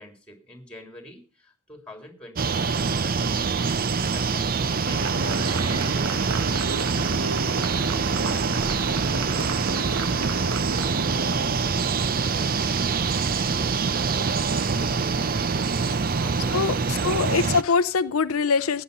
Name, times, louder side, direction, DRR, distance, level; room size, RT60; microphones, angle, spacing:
voice 1, 0.0-17.0, left 1 dB, 5° left, 3.4 m, -46 dB
sound 1, 2.4-17.6, right 5 dB, 45° right, 0.6 m, -25 dB
sound 2, 4.8-11.6, right 3 dB, 75° right, 1.4 m, -32 dB
voice 2, 16.5-18.8, left 5 dB, 80° left, 0.6 m, -23 dB
15.5 x 10.5 x 5.4 m
head